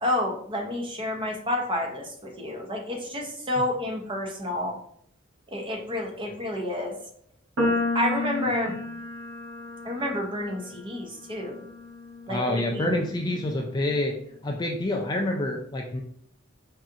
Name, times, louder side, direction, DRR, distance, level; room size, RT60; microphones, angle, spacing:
voice 1, 0.0-4.8 5.5-6.9 7.9-8.8 9.8-11.6 12.3-12.9, left 1 dB, 25° right, 1 dB, 0.7 m, -29 dB
sound 1, 7.6-13.9, left 2 dB, 75° right, 1.1 m, -33 dB
voice 2, 12.3-14.1 14.4-16.0, left 1 dB, 20° left, 1 dB, 0.3 m, -27 dB
4.8 x 2.7 x 2.5 m, 0.65 s
head